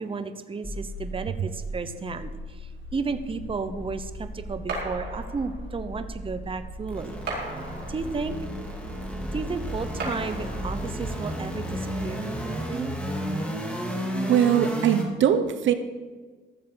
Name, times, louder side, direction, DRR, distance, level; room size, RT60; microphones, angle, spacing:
voice 1, 0.0-7.2 7.9-8.3 9.3-12.9, right 4 dB, 25° right, 10 dB, 0.9 m, -33 dB
sound 1, 0.6-15.0, equal, 5° left, 2.7 m, -34 dB
sound 2, 4.7-5.8 7.3-8.4 10.0-11.0, right 2 dB, 55° right, 4.4 m, -36 dB
voice 2, 14.3-15.7, right 9 dB, 75° right, 10 dB, 1.0 m, -21 dB
14.5 x 7.5 x 5.7 m, 1.4 s
cardioid pair, 90°, 20 cm